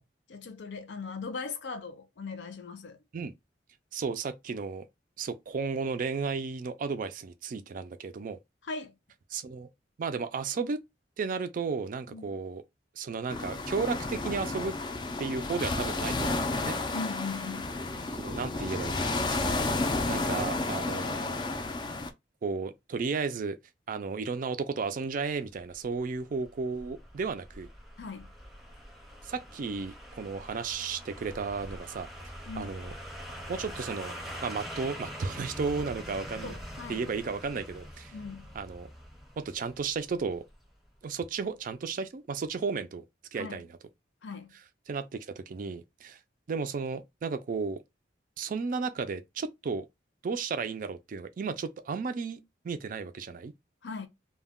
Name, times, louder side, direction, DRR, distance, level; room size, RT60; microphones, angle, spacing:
voice 1, 0.3-3.0 8.6-9.0 12.1-12.3 16.9-17.8 28.0-28.3 32.5-32.8 36.4-37.0 38.1-38.6 43.3-43.6 44.2-44.6 53.8-54.1, left 4 dB, 75° left, 0.5 m, -39 dB
voice 2, 3.9-4.9 5.2-8.4 9.3-9.7 10.0-10.8 11.2-12.6 13.0-14.7 15.2-16.8 18.2-19.6 20.1-21.4 22.4-23.6 23.9-27.7 29.2-32.1 32.6-32.9 33.5-34.1 34.4-36.5 36.9-38.1 38.6-38.9 39.4-40.4 41.0-43.0 43.3-43.7 44.9-46.2 46.5-47.8 48.4-49.9 50.2-53.5, right 5 dB, 50° right, 0.4 m, -34 dB
sound 1, 13.3-22.1, left 2 dB, 25° left, 0.3 m, -31 dB
sound 2, 25.7-40.6 40.9-41.0, equal, ahead, 0.7 m, -44 dB
2.2 x 2.2 x 3.5 m
head